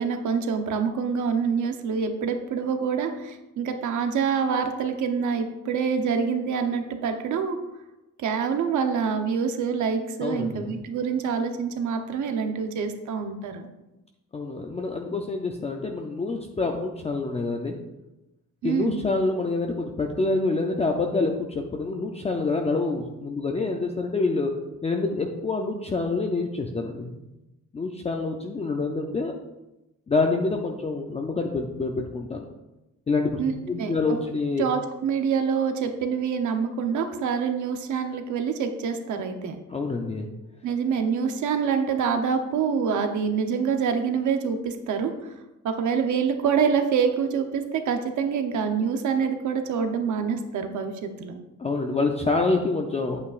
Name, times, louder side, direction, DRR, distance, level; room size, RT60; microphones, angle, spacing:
voice 1, 0.0-7.6 8.2-13.7 18.6-19.0 33.4-33.5 33.8-34.2 34.6-39.6 40.6-45.3 45.6-51.4, right 6 dB, 75° right, 6 dB, 0.9 m, -26 dB
voice 2, 10.2-10.7 14.3-17.7 18.6-24.5 24.8-27.2 27.7-29.3 30.1-32.5 33.1-33.4 33.7-34.7 39.7-40.3 51.6-53.2, left 3 dB, 20° left, 2 dB, 0.5 m, -27 dB
9.6 x 8.5 x 2.5 m, 0.98 s
wide cardioid pair, 180°, 30 cm